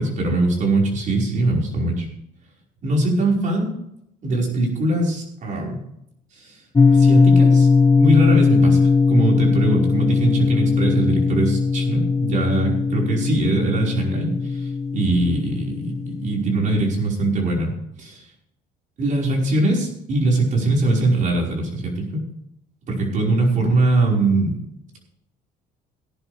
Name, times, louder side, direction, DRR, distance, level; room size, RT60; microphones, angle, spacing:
voice 1, 0.0-2.1 2.8-3.7 4.2-5.8 6.4-6.6 6.9-7.7 8.0-17.7 18.0-18.2 19.0-22.1 22.9-24.6, right 2 dB, 50° right, -1 dB, 5.3 m, -21 dB
sound 1, 6.8-16.9, left 4 dB, 20° left, 0.7 m, -19 dB
17.0 x 11.0 x 3.5 m, 0.77 s
cardioid pair, 110°, 17 cm